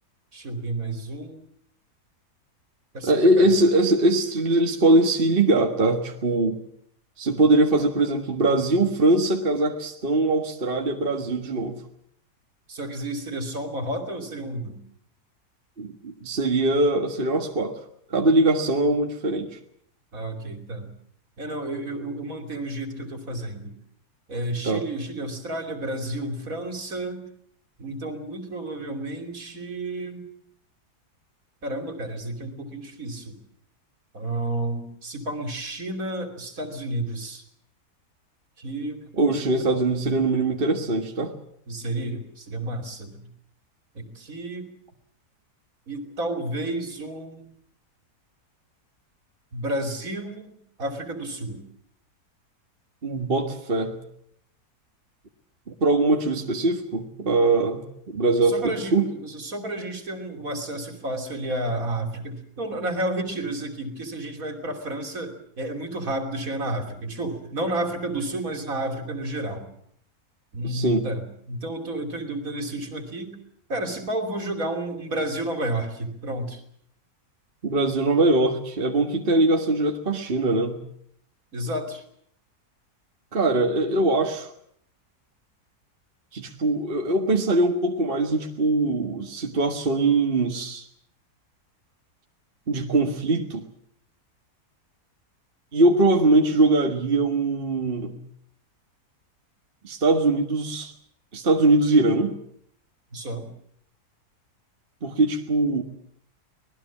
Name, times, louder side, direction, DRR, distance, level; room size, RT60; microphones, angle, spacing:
voice 1, 0.3-1.4 2.9-3.1 3.4-3.5 12.7-14.8 20.1-20.9 21.4-23.7 24.3-27.2 27.8-30.2 31.6-33.3 34.1-37.4 38.6-39.1 39.5-39.7 41.7-43.2 43.9-44.7 45.9-47.5 49.5-51.6 58.5-69.7 70.5-73.4 73.7-76.6 81.5-82.0 103.1-103.5, right 1 dB, 60° right, 5 dB, 3.4 m, -31 dB
voice 2, 3.0-6.6 7.2-11.8 15.8-17.8 18.1-19.6 24.6-24.8 39.2-41.3 53.0-54.0 55.8-59.1 70.6-71.1 77.6-80.8 83.3-84.5 86.3-90.9 92.7-93.7 95.7-98.2 99.8-100.9 101.3-102.3 105.0-105.8, right 2 dB, 35° right, 3 dB, 1.8 m, -22 dB
25.5 x 19.5 x 7.4 m, 0.67 s
omnidirectional pair, 1.7 m